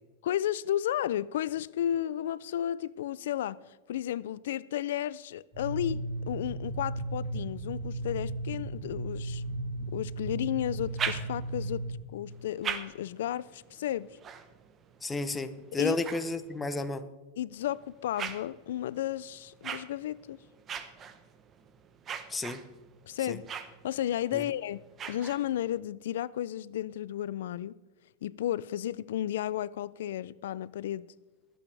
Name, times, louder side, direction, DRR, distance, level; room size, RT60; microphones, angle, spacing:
voice 1, 0.2-9.4 9.9-11.8 12.1-14.2 15.7-16.0 17.4-20.4 23.1-23.5 23.8-24.8 25.1-27.8 28.2-31.1, left 12 dB, 80° left, 0.3 m, -33 dB
sound 1, 5.5-11.9, right 2 dB, 40° left, 4.3 m, -35 dB
sound 2, 10.7-11.7 12.3-16.9 17.5-25.8, right 7 dB, 25° right, 0.8 m, -42 dB
voice 2, 15.0-17.1 22.3-22.6 23.3-23.4 24.3-24.4, left 2 dB, 10° left, 0.7 m, -32 dB
21.0 x 8.5 x 3.3 m
supercardioid pair, 155°, 0 cm